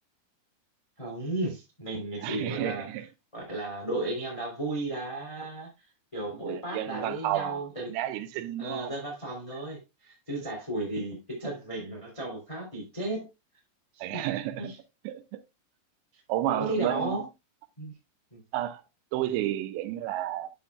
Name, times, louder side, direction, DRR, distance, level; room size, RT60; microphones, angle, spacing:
voice 1, 1.0-2.9 3.3-5.7 6.1-7.9 8.6-13.2 13.9-14.2 14.6-14.7 16.4-17.2 17.8-17.9 18.3-18.4, right 2 dB, 10° left, 1.8 m, -34 dB
voice 2, 2.2-3.1 6.4-7.6 7.9-8.9 14.0-14.7 15.0-15.4 16.3-17.2 18.5-18.8 19.1-20.5, right 13 dB, 80° right, 2.8 m, -31 dB
10.0 x 7.3 x 2.3 m
omnidirectional pair, 5.4 m